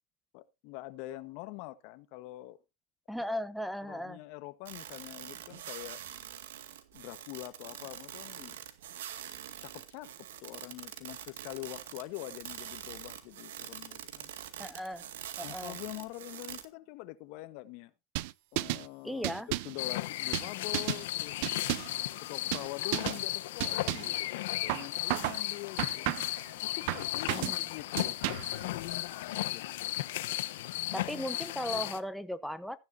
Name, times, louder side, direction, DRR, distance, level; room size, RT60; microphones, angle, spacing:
voice 1, 0.3-2.6 3.2-3.3 3.8-6.0 6.9-8.6 9.6-10.1 10.4-14.3 15.4-17.9 18.5-19.3 19.6-21.6 22.2-26.1 26.6-28.2 28.6-29.6, left 18 dB, 65° left, 1.3 m, -44 dB
voice 2, 3.1-4.2 14.6-15.1 15.4-15.7 19.0-19.5 27.3-27.6 30.9-32.8, equal, ahead, 0.9 m, -37 dB
sound 1, 4.7-16.7, right 10 dB, 85° right, 2.0 m, -45 dB
sound 2, 18.2-18.9 19.2-19.8 20.3-21.0 21.4-22.0 22.5-22.7 22.9-23.2 23.6-24.2 24.7-25.4 25.8-26.4 26.9-27.6 28.0-28.6, right 20 dB, 70° right, 0.7 m, -33 dB
sound 3, 19.8-32.0, left 16 dB, 80° left, 0.9 m, -35 dB
15.0 x 10.5 x 2.7 m
supercardioid pair, 115°, 0 cm